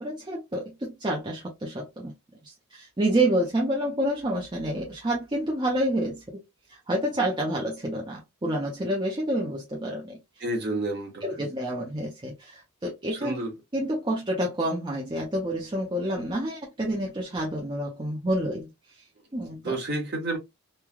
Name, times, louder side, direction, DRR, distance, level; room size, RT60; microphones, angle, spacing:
voice 1, 0.0-2.1 2.4-6.4 6.7-10.2 11.2-13.3 13.7-18.7 19.3-19.8, right 1 dB, 20° right, 0.6 m, -28 dB
voice 2, 10.4-11.4 13.1-13.5 19.6-20.4, right 2 dB, 45° right, 1.2 m, -30 dB
3.1 x 2.3 x 2.2 m
head